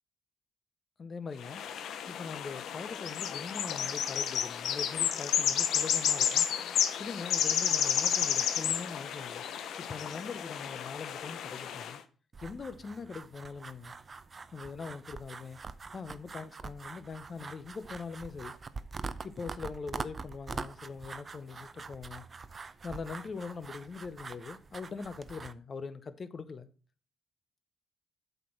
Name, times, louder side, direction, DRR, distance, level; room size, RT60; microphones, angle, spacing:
voice 1, 1.0-1.6 2.1-6.5 7.0-9.4 9.8-12.0 12.4-13.9 14.5-15.6 15.9-18.5 19.2-22.2 22.6-26.7, left 5 dB, 40° left, 0.8 m, -42 dB
sound 1, 1.4-12.0, left 9 dB, 75° left, 0.7 m, -31 dB
sound 2, 12.3-25.5, right 4 dB, 35° right, 0.5 m, -44 dB
8.1 x 4.4 x 5.8 m
cardioid pair, 90°, 0 cm